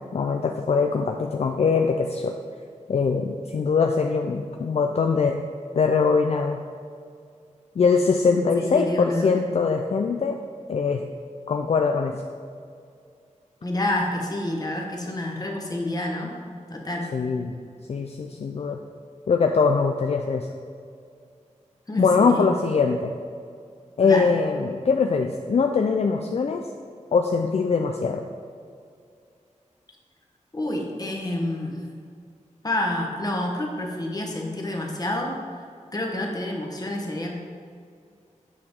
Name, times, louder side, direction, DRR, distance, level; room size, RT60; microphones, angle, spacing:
voice 1, 0.1-2.3 2.9-5.4 5.7-6.6 7.8-10.4 10.7-11.1 11.5-12.2 17.1-17.6 17.9-18.8 19.3-20.5 22.0-23.1 24.0-26.6 27.1-28.2, left 5 dB, 55° left, 4 dB, 0.4 m, -22 dB
voice 2, 8.3-9.4 13.6-16.4 16.7-17.1 21.9-22.5 24.0-24.3 30.5-31.8 32.6-35.4 35.9-37.3, left 1 dB, 30° left, 0 dB, 1.1 m, -28 dB
8.5 x 4.9 x 3.6 m, 2.3 s
wide cardioid pair, 90°, 13 cm